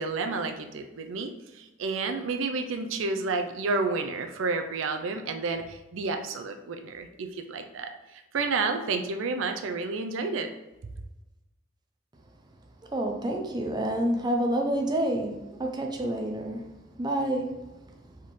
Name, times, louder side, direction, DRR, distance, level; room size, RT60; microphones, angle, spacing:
voice 1, 0.0-10.5, right 4 dB, 85° right, 6 dB, 0.4 m, -30 dB
voice 2, 12.9-16.7 17.0-17.7, right 1 dB, 20° right, 2 dB, 0.5 m, -28 dB
4.4 x 3.6 x 3.1 m, 1.0 s
head